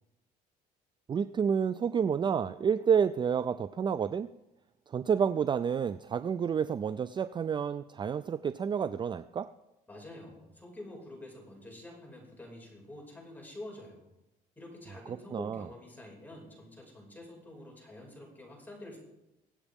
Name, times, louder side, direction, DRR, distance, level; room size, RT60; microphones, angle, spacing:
voice 1, 1.1-4.3 4.9-9.5 15.3-15.7, right 7 dB, 30° right, 14 dB, 0.4 m, -29 dB
voice 2, 9.9-14.1 14.6-19.0, left 1 dB, 10° left, -2 dB, 5.6 m, -47 dB
24.5 x 8.3 x 3.6 m, 0.95 s
cardioid pair, 110°, 17 cm